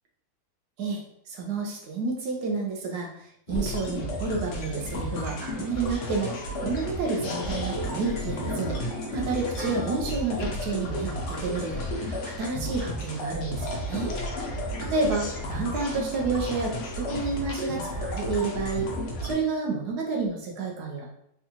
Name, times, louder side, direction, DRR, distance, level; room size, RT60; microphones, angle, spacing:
voice 1, 0.8-8.8 9.1-14.1 14.8-18.9 19.2-21.1, right 4 dB, 65° right, 0 dB, 1.1 m, -30 dB
sound 1, 3.5-19.3, equal, 90° left, 0.6 m, -32 dB
3.7 x 2.3 x 2.8 m, 0.76 s
omnidirectional pair, 2.1 m